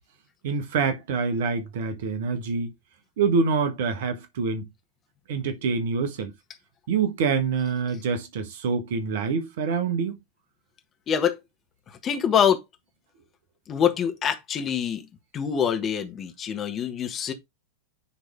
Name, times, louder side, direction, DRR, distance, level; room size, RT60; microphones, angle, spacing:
voice 1, 0.4-2.7 3.2-4.7 5.3-6.3 6.9-10.2, right 5 dB, 55° right, 1.3 m, -26 dB
voice 2, 11.1-11.4 12.0-12.6 13.7-15.1 15.3-17.3, left 8 dB, 25° left, 1.5 m, -25 dB
9.8 x 3.6 x 3.5 m
figure-of-eight pair, 90°, 0 cm